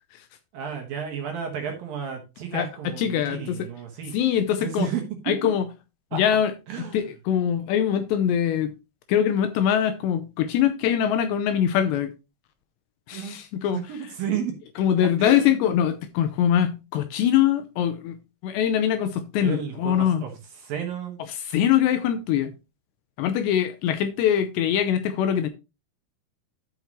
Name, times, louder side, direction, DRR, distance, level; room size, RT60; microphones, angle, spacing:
voice 1, 0.5-4.1 4.6-5.2 6.1-6.2 6.7-7.1 13.1-13.4 13.7-14.5 15.2-15.5 19.4-21.2, right 8 dB, 65° right, 2.5 m, -32 dB
voice 2, 2.5-3.7 4.1-4.9 5.3-5.7 6.1-6.5 6.8-8.7 9.1-12.1 13.1-13.8 14.8-18.2 18.4-20.2 21.3-22.5 23.2-25.5, left 9 dB, 85° left, 2.6 m, -23 dB
12.5 x 5.8 x 3.0 m
omnidirectional pair, 5.4 m